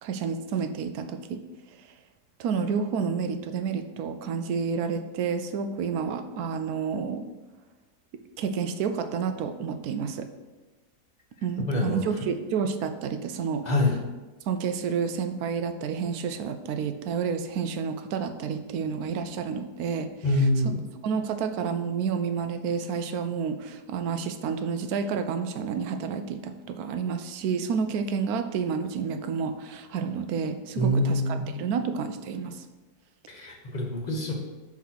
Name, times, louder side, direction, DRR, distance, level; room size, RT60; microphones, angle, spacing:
voice 1, 0.0-1.4 2.4-7.2 8.4-10.3 11.4-13.7 14.5-20.1 21.0-32.7, right 6 dB, 70° right, 8 dB, 1.1 m, -30 dB
voice 2, 11.7-12.0 13.6-14.0 20.2-20.8 30.8-31.6 33.3-34.3, left 1 dB, 30° left, 0 dB, 1.2 m, -25 dB
6.0 x 4.3 x 6.0 m, 1.2 s
omnidirectional pair, 1.7 m